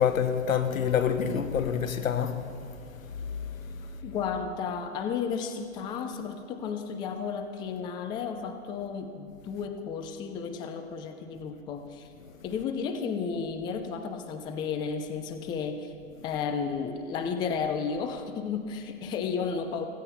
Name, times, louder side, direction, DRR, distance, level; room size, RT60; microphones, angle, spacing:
voice 1, 0.0-3.4 3.7-3.9 12.2-12.3, left 7 dB, 85° left, 1.4 m, -28 dB
voice 2, 4.0-12.1 12.4-15.9 16.2-19.9, left 6 dB, 10° left, 0.5 m, -33 dB
16.5 x 15.5 x 4.3 m
hypercardioid pair, 135°, 40 cm